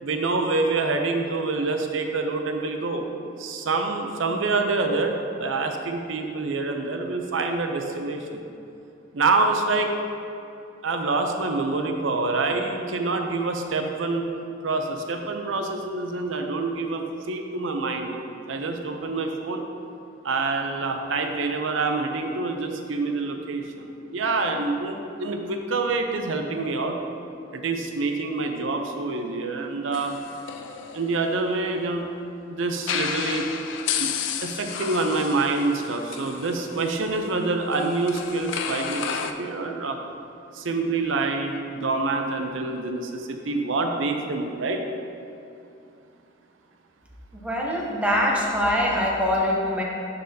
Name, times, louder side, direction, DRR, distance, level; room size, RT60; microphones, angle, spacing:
voice 1, 0.0-3.0 3.4-8.4 9.1-9.9 10.8-14.2 14.6-19.6 20.2-27.0 27.5-30.2 30.9-32.0 32.5-33.5 34.0-34.1 34.4-40.0 40.5-44.8, right 3 dB, 85° right, 4 dB, 0.6 m, -26 dB
sound 1, 29.9-32.0 32.8-39.3, left 7 dB, 70° left, 0.4 m, -32 dB
voice 2, 47.3-49.8, left 1 dB, 5° right, -3 dB, 0.8 m, -23 dB
11.5 x 4.0 x 2.8 m, 2.7 s
head